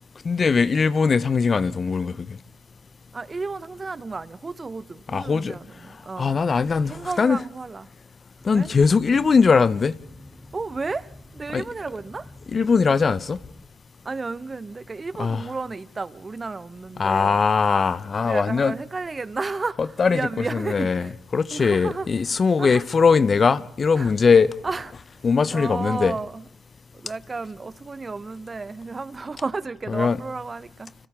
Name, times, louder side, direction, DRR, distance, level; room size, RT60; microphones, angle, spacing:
voice 1, 0.2-2.4 5.1-5.6 6.2-7.4 8.4-10.0 11.5-11.6 12.5-13.4 15.2-15.4 17.0-18.8 20.0-20.2 20.5-24.5 25.2-26.1 29.9-30.2, left 5 dB, 45° left, 0.7 m, -20 dB
voice 2, 3.1-6.4 6.8-7.9 8.5-8.7 10.5-11.1 11.3-12.3 14.0-17.4 18.2-21.1 21.5-22.1 22.6-22.8 23.9-24.1 24.6-24.9 25.5-26.4 26.9-30.9, right 3 dB, 30° right, 1.0 m, -32 dB
sound 1, 8.4-13.7, left 1 dB, 5° left, 2.6 m, -47 dB
30.0 x 25.5 x 3.6 m
supercardioid pair, 60°, 0 cm